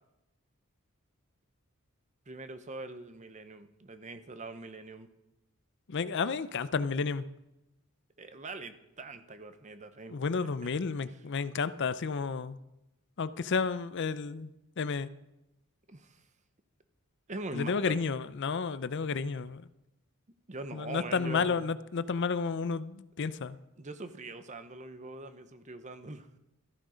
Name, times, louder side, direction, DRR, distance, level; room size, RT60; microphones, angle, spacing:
voice 1, 2.3-5.1 8.2-10.2 10.6-10.7 15.9-16.2 17.3-18.0 20.5-21.6 23.8-26.3, right 2 dB, 35° right, 10 dB, 0.8 m, -42 dB
voice 2, 5.9-7.2 10.1-12.6 13.2-15.1 17.5-19.6 20.7-23.6, left 5 dB, 55° left, 14 dB, 0.5 m, -31 dB
14.0 x 10.0 x 5.1 m, 0.92 s
head